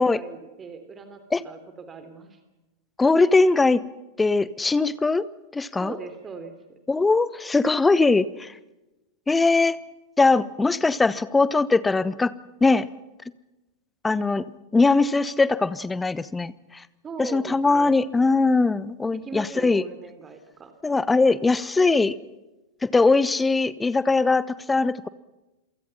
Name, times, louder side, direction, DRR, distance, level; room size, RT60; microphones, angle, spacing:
voice 1, 0.0-2.4 5.8-6.5 17.0-18.0 19.2-20.7, right 5 dB, 20° right, 8 dB, 3.2 m, -39 dB
voice 2, 3.0-3.8 4.2-5.3 5.5-5.9 6.9-8.5 9.3-9.8 10.2-12.3 12.6-12.9 14.0-14.4 14.7-16.8 17.2-19.8 20.8-22.1 22.8-25.1, left 3 dB, 10° left, 18 dB, 1.0 m, -21 dB
28.5 x 23.5 x 5.7 m, 1.0 s
figure-of-eight pair, 90°, 0 cm